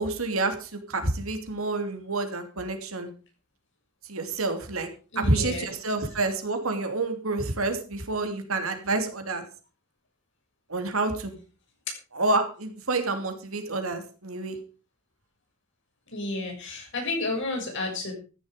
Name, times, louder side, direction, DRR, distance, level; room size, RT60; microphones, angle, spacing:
voice 1, 0.0-3.1 4.0-4.9 5.1-9.4 10.7-11.4 12.1-14.6, right 2 dB, 75° right, 6 dB, 3.0 m, -28 dB
voice 2, 5.1-5.7 16.1-18.1, left 2 dB, 60° left, 2 dB, 6.7 m, -31 dB
14.5 x 11.0 x 5.1 m, 0.35 s
head